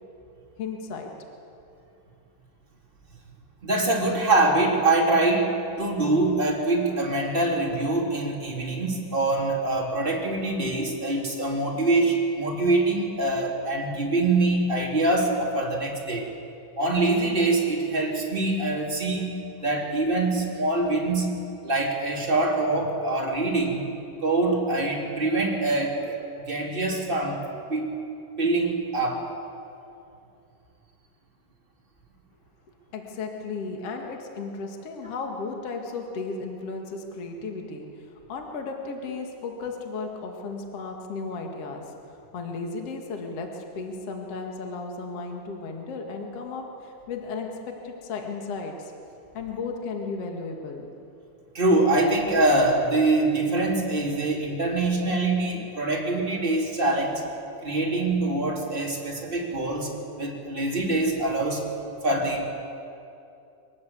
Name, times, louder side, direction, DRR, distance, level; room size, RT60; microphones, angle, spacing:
voice 1, 0.6-1.1 32.9-48.9 49.3-50.9, left 4 dB, 70° left, 2 dB, 1.4 m, -35 dB
voice 2, 3.6-16.3 16.8-21.4 21.6-23.9 24.2-26.2 26.5-27.4 27.7-28.0 28.4-29.3 51.5-57.2 57.6-59.9 60.2-61.6 62.0-62.4, right 2 dB, 15° right, -2 dB, 2.0 m, -24 dB
23.5 x 19.5 x 8.2 m, 2.6 s
omnidirectional pair, 5.9 m